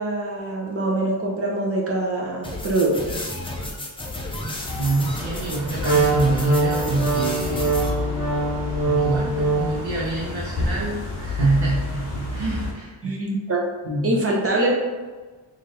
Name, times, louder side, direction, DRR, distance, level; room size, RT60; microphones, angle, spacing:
voice 1, 0.0-3.2 13.0-13.6 14.0-14.7, right 2 dB, 30° right, -2 dB, 0.7 m, -24 dB
sound 1, 2.4-7.9, left 1 dB, 10° left, 0.4 m, -32 dB
sound 2, 4.5-12.7, left 3 dB, 30° left, 1.2 m, -30 dB
voice 2, 4.8-7.8 8.8-13.2 13.8-14.2, right 3 dB, 80° right, -6 dB, 0.9 m, -26 dB
Wind instrument woodwind instrument, 5.8-9.9, right 3 dB, 55° right, 1.4 m, -23 dB
3.3 x 2.6 x 4.0 m, 1.3 s
wide cardioid pair, 165°, 46 cm